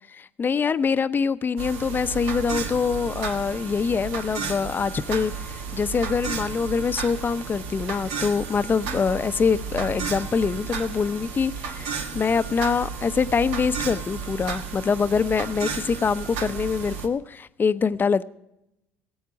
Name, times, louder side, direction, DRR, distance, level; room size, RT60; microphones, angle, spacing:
voice 1, 0.1-18.2, left 5 dB, 35° left, 0.7 m, -24 dB
sound 1, 1.6-17.1, right 6 dB, 80° right, 1.4 m, -33 dB
17.0 x 8.1 x 6.2 m
hypercardioid pair, 70°, 6 cm